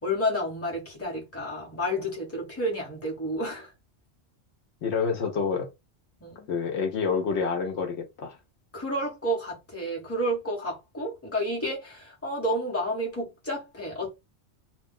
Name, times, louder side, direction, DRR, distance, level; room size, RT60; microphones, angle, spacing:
voice 1, 0.0-3.7 6.2-6.5 8.7-14.1, equal, 15° left, 1.0 m, -30 dB
voice 2, 4.8-5.7 6.5-8.4, left 5 dB, 75° left, 0.9 m, -28 dB
2.3 x 2.1 x 3.6 m
omnidirectional pair, 1.1 m